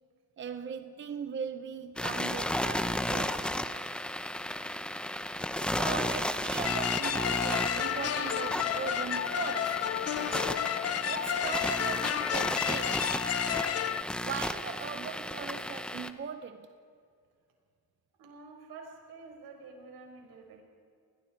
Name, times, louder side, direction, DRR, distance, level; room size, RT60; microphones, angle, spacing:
voice 1, 0.4-3.5 5.7-9.9 11.1-13.0 14.2-16.8, right 7 dB, 30° right, 0.8 m, -39 dB
sound 1, 2.0-16.1, left 1 dB, 5° left, 0.7 m, -34 dB
voice 2, 4.7-5.3 10.6-11.3 18.2-20.6, right 4 dB, 85° right, 5.5 m, -50 dB
sound 2, 6.6-14.0, left 10 dB, 45° left, 0.6 m, -31 dB
30.0 x 21.5 x 4.6 m
cardioid pair, 160°, 36 cm